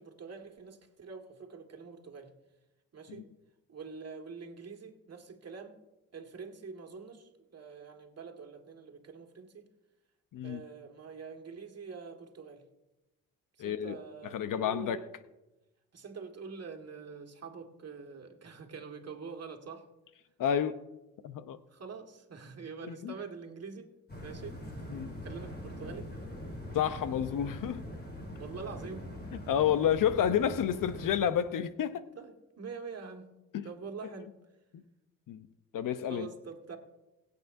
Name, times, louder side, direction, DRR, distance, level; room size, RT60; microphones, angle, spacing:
voice 1, 0.0-2.3 2.9-3.2 3.7-5.8 6.1-9.7 10.4-12.6 13.6-15.1 15.9-19.8 21.7-23.9 24.2-24.6 24.9-26.1 28.4-29.1 32.1-33.3 33.6-34.3 36.1-36.8, right 5 dB, 45° right, 2.0 m, -45 dB
voice 2, 13.6-13.9 14.3-15.0 20.4-20.7 21.2-21.6 22.8-23.1 24.9-25.1 26.7-27.8 29.3-32.1 33.5-33.7 35.3-35.5 35.7-36.3, left 9 dB, 65° left, 0.9 m, -30 dB
sound 1, 24.1-31.1, equal, 30° left, 4.9 m, -43 dB
21.0 x 8.4 x 2.7 m
supercardioid pair, 60°, 35 cm